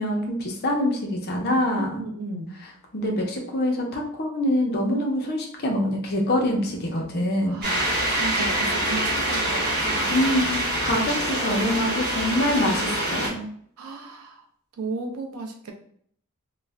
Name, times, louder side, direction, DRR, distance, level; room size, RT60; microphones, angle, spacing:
voice 1, 0.0-2.0 2.9-7.7 10.1-13.5, left 1 dB, 45° left, 1 dB, 0.6 m, -25 dB
voice 2, 1.9-2.6 7.5-10.3 13.8-14.4 14.8-15.7, right 3 dB, 80° right, 3 dB, 0.5 m, -35 dB
sound 1, 7.6-13.3, right 1 dB, 45° right, 0.8 m, -25 dB
2.3 x 2.0 x 3.3 m, 0.62 s
head